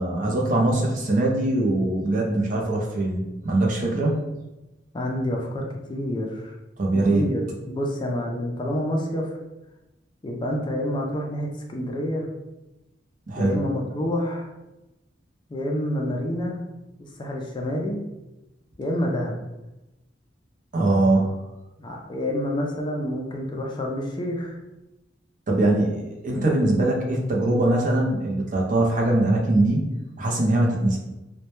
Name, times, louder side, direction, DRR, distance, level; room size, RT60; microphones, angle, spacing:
voice 1, 0.0-4.2 6.8-7.3 13.3-13.6 20.7-21.3 25.5-29.9 30.2-31.0, right 2 dB, 45° right, 0 dB, 0.5 m, -22 dB
voice 2, 4.9-6.5 6.9-9.3 10.2-12.3 13.4-14.5 15.5-16.6 17.2-18.0 18.8-19.3 21.8-24.6, left 1 dB, 25° left, 0 dB, 0.3 m, -28 dB
2.1 x 2.1 x 2.9 m, 0.98 s
head